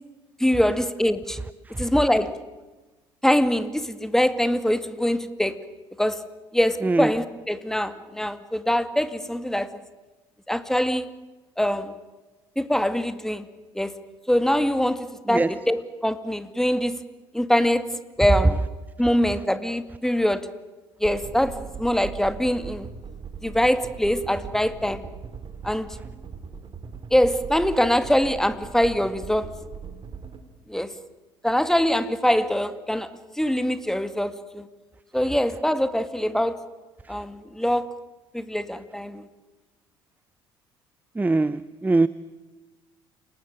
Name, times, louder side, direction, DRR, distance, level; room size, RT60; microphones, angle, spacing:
voice 1, 0.4-1.4 1.8-2.4 3.2-5.6 6.0-6.2 6.5-9.8 10.5-11.1 11.6-11.9 12.6-13.5 13.8-13.9 14.3-17.0 17.3-18.6 19.0-20.5 21.0-22.9 23.4-25.0 25.6-26.0 27.1-29.5 30.7-30.9 31.4-33.1 33.4-34.7 35.1-36.6 37.1-37.9 38.3-39.3, equal, 5° left, 2.1 m, -23 dB
sound 1, 21.0-30.4, right 6 dB, 40° right, 3.3 m, -39 dB
voice 2, 41.2-42.1, right 3 dB, 10° right, 0.7 m, -21 dB
29.0 x 19.0 x 8.9 m
hypercardioid pair, 60°, 13 cm